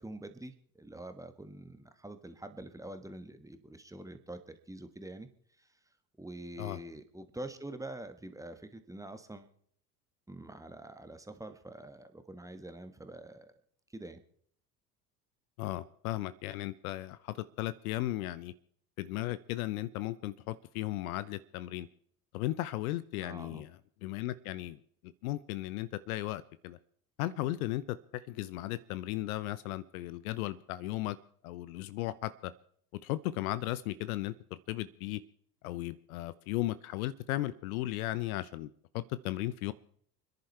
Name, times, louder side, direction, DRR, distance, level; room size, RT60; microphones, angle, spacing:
voice 1, 0.0-5.3 5.6-5.7 6.2-9.5 10.3-13.5 13.9-14.2 23.2-23.6, right 1 dB, 5° right, 8 dB, 1.5 m, -45 dB
voice 2, 15.6-18.5 19.0-21.9 22.3-23.7 24.0-24.8 25.2-26.8 27.2-31.2 31.4-32.5 33.0-35.2 35.6-39.7, left 16 dB, 60° left, 17 dB, 0.8 m, -36 dB
29.5 x 10.5 x 3.3 m, 0.63 s
figure-of-eight pair, 70°, 49 cm